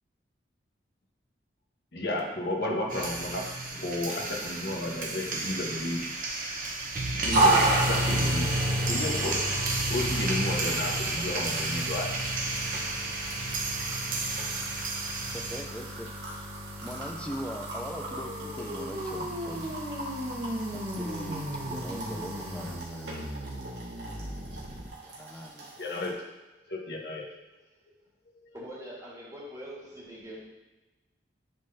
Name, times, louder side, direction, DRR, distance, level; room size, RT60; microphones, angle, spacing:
voice 1, 1.9-3.4 3.7-6.1 7.2-9.4 9.9-12.1 25.8-26.3 26.7-27.2 28.3-28.5, left 1 dB, 60° left, -1 dB, 1.1 m, -33 dB
sound 1, 2.9-15.6, right 2 dB, 45° right, 0.8 m, -31 dB
sound 2, 7.3-26.1, right 2 dB, 90° right, 1.6 m, -33 dB
voice 2, 15.3-16.5 16.8-19.8 20.7-23.7 25.0-25.7, equal, 5° left, 3 dB, 0.4 m, -41 dB
sound 3, 17.8-24.9, equal, 65° right, 1.2 m, -38 dB
voice 3, 28.5-30.4, equal, 20° right, -6 dB, 1.6 m, -43 dB
10.5 x 3.8 x 2.7 m, 1.1 s
head